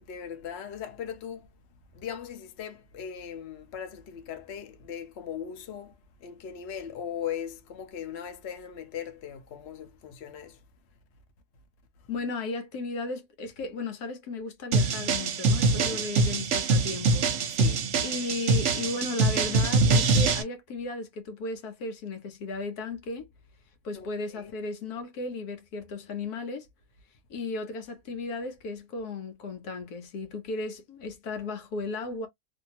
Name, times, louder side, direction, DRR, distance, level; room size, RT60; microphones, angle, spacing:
voice 1, 0.0-1.5 1.9-10.6 15.6-16.1 17.5-17.9 23.9-24.5, left 8 dB, 55° left, 0.8 m, -39 dB
voice 2, 12.1-17.3 18.0-23.3 23.8-26.7 27.3-32.3, left 3 dB, 75° left, 1.3 m, -35 dB
sound 1, 14.7-20.4, right 3 dB, 55° right, 0.9 m, -24 dB
2.8 x 2.6 x 2.8 m
omnidirectional pair, 1.7 m